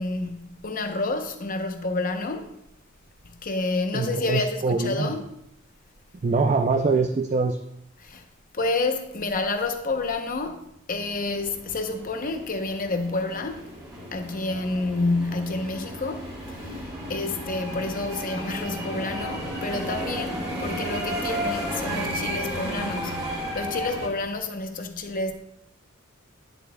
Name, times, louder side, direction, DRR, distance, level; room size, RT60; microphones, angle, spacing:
voice 1, 0.0-2.5 3.2-5.3 8.0-8.2 8.5-13.6 14.1-25.3, left 3 dB, 40° left, 0.8 m, -29 dB
voice 2, 3.9-5.1 6.2-7.6, right 4 dB, 35° right, 0.4 m, -23 dB
sound 1, 11.0-24.1, equal, 20° right, 2.0 m, -33 dB
10.0 x 7.8 x 2.2 m
head